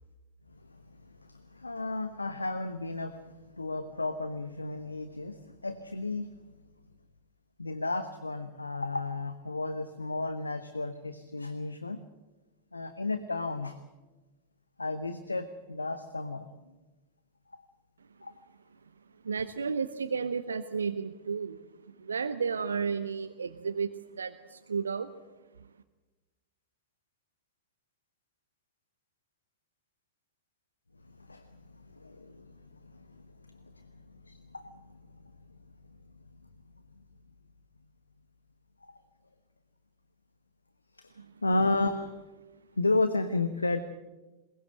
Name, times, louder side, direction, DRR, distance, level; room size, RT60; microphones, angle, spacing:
voice 1, 1.6-3.2 3.6-5.3 5.6-6.3 7.6-12.0 12.7-13.7 14.8-16.5 18.2-18.3 31.3-31.4 32.0-32.3 34.3-34.6 41.4-42.1 42.8-43.8, left 2 dB, 80° left, 11 dB, 1.0 m, -32 dB
voice 2, 19.2-25.1 41.2-41.3, right 5 dB, 70° right, 9 dB, 0.8 m, -33 dB
21.5 x 20.0 x 7.8 m, 1.1 s
figure-of-eight pair, 90°, 0 cm